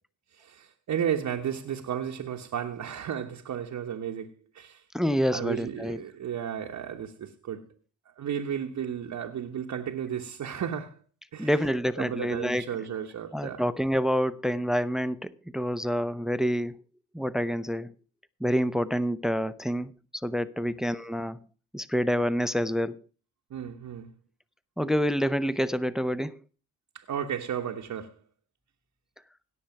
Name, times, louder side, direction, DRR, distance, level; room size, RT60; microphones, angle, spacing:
voice 1, 0.3-4.8 5.3-7.6 8.2-11.0 11.3-11.6 12.0-13.6 20.6-20.7 23.5-24.1 26.9-28.2, right 9 dB, 60° right, 1.2 m, -33 dB
voice 2, 4.9-6.0 11.4-12.6 13.3-16.8 17.1-17.9 18.4-19.9 20.2-21.4 21.7-23.0 24.8-26.4, equal, ahead, 0.9 m, -27 dB
17.0 x 6.4 x 6.0 m
hypercardioid pair, 45°, 33 cm